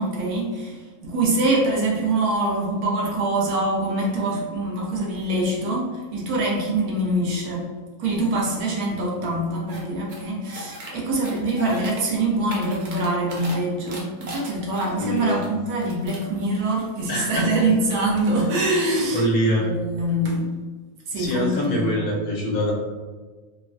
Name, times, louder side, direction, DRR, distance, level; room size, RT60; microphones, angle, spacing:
voice 1, 0.0-7.7 8.0-19.2 19.5-20.5 21.1-22.0, right 2 dB, 80° right, -2 dB, 1.2 m, -24 dB
sound 1, 9.7-9.8 10.1-10.9 11.2-12.0 12.3-13.6 13.9-15.5 15.8-16.3, right 1 dB, 60° right, 0.5 m, -38 dB
voice 2, 15.0-15.4 17.1-17.8 19.1-19.7 21.1-22.7, equal, 75° left, -3 dB, 1.2 m, -24 dB
3.5 x 2.1 x 2.4 m, 1.3 s
omnidirectional pair, 1.6 m